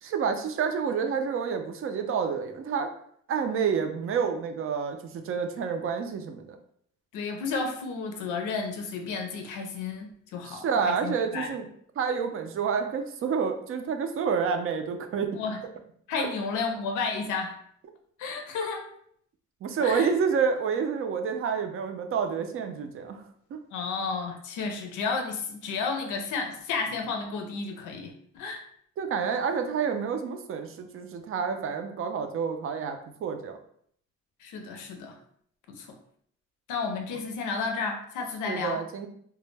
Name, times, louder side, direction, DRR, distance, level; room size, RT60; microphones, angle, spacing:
voice 1, 0.0-2.9 3.3-6.6 10.5-11.6 12.0-15.4 16.2-16.3 19.6-23.2 23.5-23.6 29.0-33.6 38.4-39.1, right 6 dB, 45° right, 6 dB, 0.4 m, -29 dB
voice 2, 7.1-11.5 15.3-15.6 16.1-17.6 18.2-18.9 19.8-20.1 23.7-28.6 34.4-35.2 35.7-36.0 36.7-38.8, left 4 dB, 85° left, 4 dB, 0.5 m, -32 dB
2.2 x 2.0 x 3.2 m, 0.65 s
cardioid pair, 90°, 30 cm